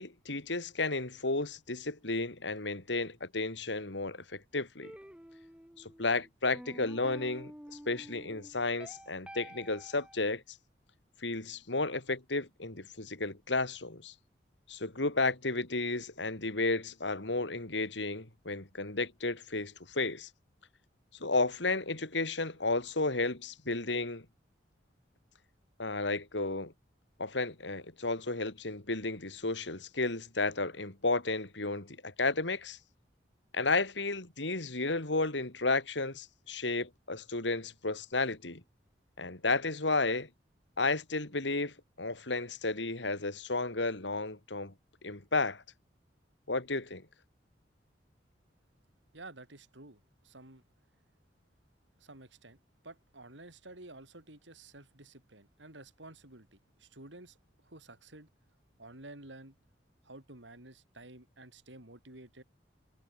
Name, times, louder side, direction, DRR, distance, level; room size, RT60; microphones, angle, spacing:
voice 1, 0.0-4.9 5.8-10.6 11.2-14.1 14.7-20.3 21.2-24.2 25.8-26.7 27.2-32.8 33.5-38.6 39.2-40.3 40.8-44.7 45.0-45.6 46.5-47.0, left 3 dB, 80° left, 3.1 m, -33 dB
sound 1, 4.8-10.2, equal, 5° right, 2.1 m, -49 dB
voice 2, 49.1-50.6 52.0-52.6 52.8-57.4 57.6-58.3 58.8-59.6 60.0-62.4, right 2 dB, 90° right, 5.4 m, -51 dB
head